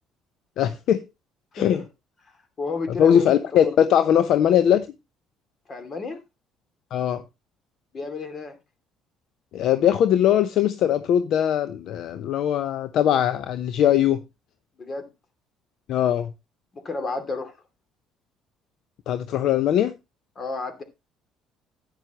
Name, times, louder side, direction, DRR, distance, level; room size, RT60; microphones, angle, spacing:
voice 1, 0.6-1.1 1.5-1.8 2.9-4.9 6.9-7.2 9.5-14.2 15.9-16.3 19.1-19.9, left 10 dB, 65° left, 0.7 m, -20 dB
voice 2, 2.6-3.7 5.7-6.2 7.9-8.6 14.8-15.1 16.7-17.5 20.4-20.8, left 3 dB, 40° left, 2.6 m, -32 dB
11.0 x 9.2 x 3.0 m
hypercardioid pair, 65°, 0 cm